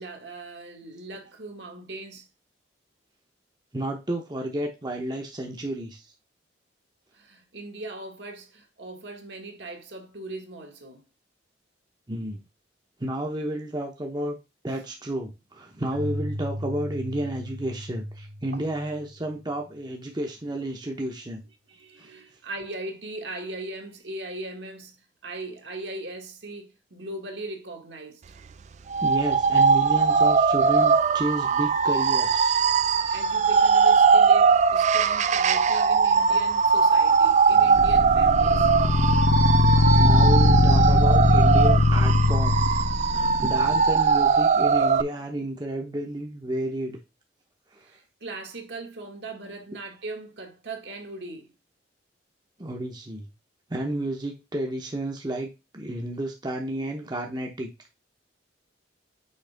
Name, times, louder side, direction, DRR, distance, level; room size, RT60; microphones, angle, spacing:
voice 1, 0.0-2.3 7.1-11.0 18.5-18.6 21.7-25.0 25.2-28.2 32.8-38.7 47.8-51.5, right 2 dB, 65° right, 1.7 m, -39 dB
voice 2, 3.7-6.0 12.1-12.4 13.0-14.4 14.6-21.4 22.0-22.1 29.0-32.6 40.0-42.6 43.1-47.0 47.7-47.9 52.6-53.3 53.7-57.7, right 1 dB, 20° right, 0.9 m, -31 dB
Keyboard (musical), 15.9-19.4, equal, 80° right, 1.5 m, -36 dB
sound 1, 28.9-45.0, right 5 dB, 40° right, 0.3 m, -20 dB
sound 2, 37.8-43.9, left 2 dB, 60° left, 0.7 m, -20 dB
6.4 x 4.8 x 3.4 m
head